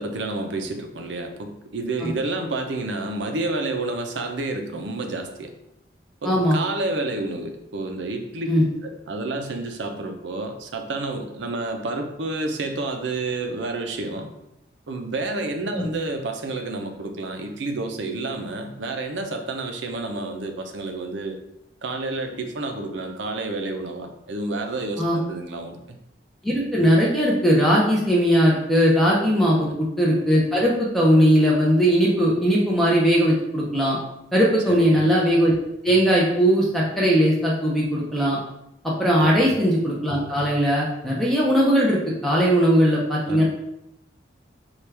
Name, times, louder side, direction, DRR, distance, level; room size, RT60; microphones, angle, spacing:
voice 1, 0.0-5.5 6.2-8.5 8.8-14.3 14.9-21.4 21.8-26.0 29.5-29.8 34.7-35.0 39.2-39.5 43.3-43.4, right 2 dB, 85° right, 5 dB, 0.5 m, -30 dB
voice 2, 6.2-6.6 8.5-8.6 15.8-15.9 25.0-25.2 26.4-29.7 30.0-34.0 34.3-35.5 35.8-38.4 38.8-43.4, equal, ahead, -5 dB, 0.5 m, -19 dB
4.4 x 2.3 x 3.3 m, 0.83 s
head